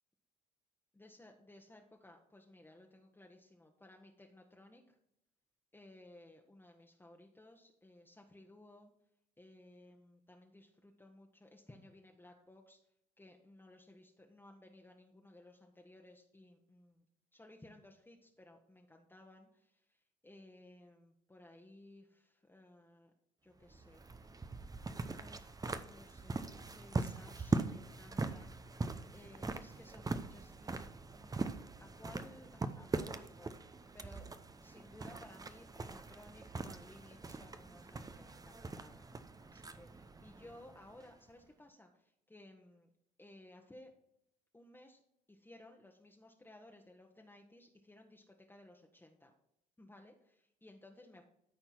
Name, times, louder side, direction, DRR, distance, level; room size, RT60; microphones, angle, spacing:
voice 1, 0.9-5.0 5.7-8.9 9.4-12.8 13.2-17.0 17.3-23.1 23.4-24.6 25.1-30.8 31.1-34.3 34.6-39.1 39.4-42.9 43.2-43.9 44.5-45.0 45.3-49.3 49.8-51.2, left 1 dB, 10° left, 1 dB, 1.2 m, -59 dB
sound 1, 23.6-41.3, right 3 dB, 20° right, 0.7 m, -42 dB
13.0 x 4.4 x 4.4 m, 0.77 s
hypercardioid pair, 60°, 21 cm